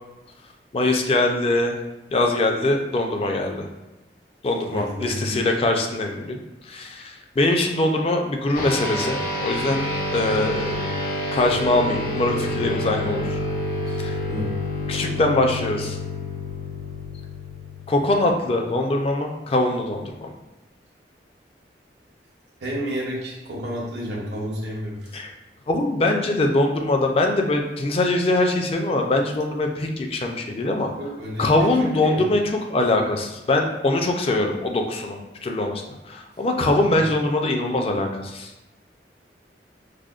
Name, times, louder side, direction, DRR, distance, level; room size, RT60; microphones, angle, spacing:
voice 1, 0.7-1.8 2.1-3.7 4.4-6.4 6.7-9.9 10.1-10.9 11.3-13.3 14.0-14.1 14.9-16.0 17.9-20.3 25.1-25.3 25.7-30.9 31.4-32.4 32.7-35.8 36.1-38.5, left 2 dB, 35° left, 3 dB, 0.4 m, -22 dB
voice 2, 4.6-5.5 14.3-14.5 22.6-25.2 31.0-31.5 31.8-32.2 36.9-37.1, equal, 75° right, -4 dB, 0.7 m, -31 dB
sound 1, 8.6-18.3, left 1 dB, 55° left, 0.7 m, -28 dB
4.8 x 2.1 x 2.3 m, 1.0 s
head